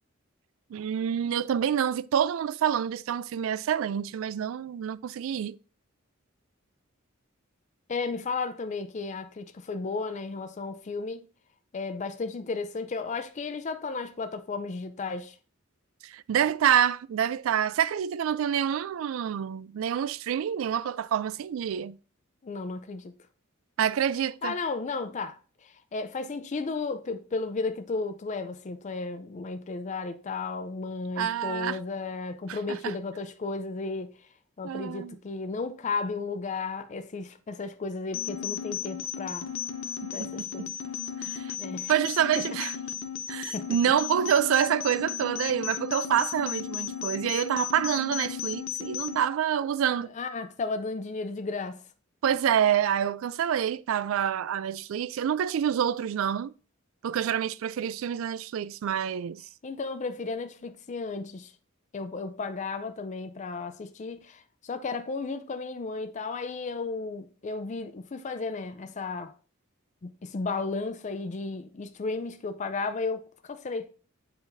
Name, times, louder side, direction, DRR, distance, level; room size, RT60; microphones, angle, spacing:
voice 1, 0.7-5.6 16.0-22.0 23.8-24.5 31.2-31.8 32.5-32.9 34.6-35.2 40.0-40.7 41.2-41.5 41.9-42.7 43.3-50.1 52.2-56.5 57.0-59.4, right 9 dB, 70° right, 0.3 m, -27 dB
voice 2, 7.9-11.2 11.7-15.3 22.4-23.1 24.4-25.4 25.9-34.1 34.6-39.5 40.1-40.7 41.2-41.3 41.6-41.9 42.4-42.5 43.5-43.8 50.1-51.8 59.6-61.5 61.9-69.3 70.0-73.9, left 4 dB, 35° left, 0.4 m, -34 dB
sound 1, 38.1-49.2, left 9 dB, 70° left, 0.8 m, -35 dB
7.6 x 4.8 x 2.6 m
head